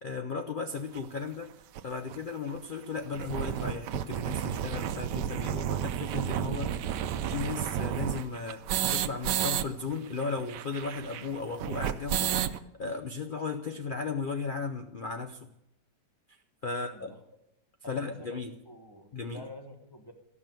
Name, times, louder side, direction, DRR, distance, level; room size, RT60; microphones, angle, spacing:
voice 1, 0.0-1.5 1.8-6.8 7.3-12.5 12.8-15.5 16.3-16.4 16.6-17.1 17.8-18.5 19.1-19.4, left 4 dB, 75° left, 5 dB, 0.4 m, -36 dB
sound 1, 1.0-1.1 1.7-1.8 2.1-2.2 2.5-2.6 3.0-9.6 9.9-10.0 10.2-12.6, right 10 dB, 85° right, 1.2 m, -31 dB
voice 2, 16.7-17.2 17.8-18.4 18.6-20.1, left 1 dB, 15° left, 4 dB, 1.1 m, -47 dB
14.0 x 6.0 x 9.0 m, 0.85 s
omnidirectional pair, 1.8 m